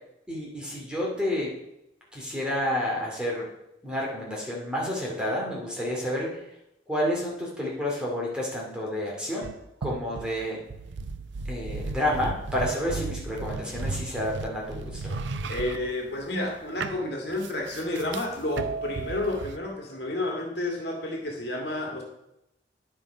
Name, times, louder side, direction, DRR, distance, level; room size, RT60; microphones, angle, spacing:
voice 1, 0.3-1.5 2.1-3.5 3.8-6.4 6.9-9.5 9.8-10.6 11.4-15.1, left 1 dB, 5° right, -3 dB, 2.4 m, -30 dB
sound 1, 9.4-16.5 16.8-19.6, right 3 dB, 85° right, 0.6 m, -35 dB
voice 2, 15.5-22.0, left 1 dB, 65° left, 1 dB, 2.1 m, -30 dB
9.8 x 7.5 x 5.1 m, 0.85 s
head